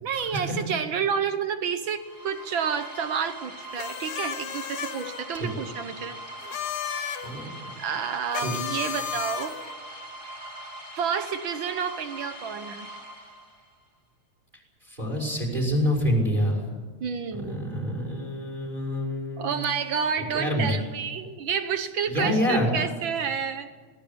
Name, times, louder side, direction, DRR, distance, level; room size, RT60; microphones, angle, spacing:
voice 1, 0.0-6.2 7.8-9.6 11.0-12.9 17.0-17.7 19.4-23.7, right 7 dB, 60° right, 10 dB, 1.3 m, -29 dB
sound 1, 1.9-13.8, right 1 dB, 30° right, 7.1 m, -41 dB
sound 2, 3.8-5.2 6.4-7.3 8.3-9.7, left 8 dB, 60° left, 1.6 m, -33 dB
voice 2, 14.9-16.6 17.3-19.5 20.3-20.8 22.1-22.7, equal, 15° right, -1 dB, 5.4 m, -26 dB
21.5 x 19.0 x 8.7 m, 1.5 s
omnidirectional pair, 3.3 m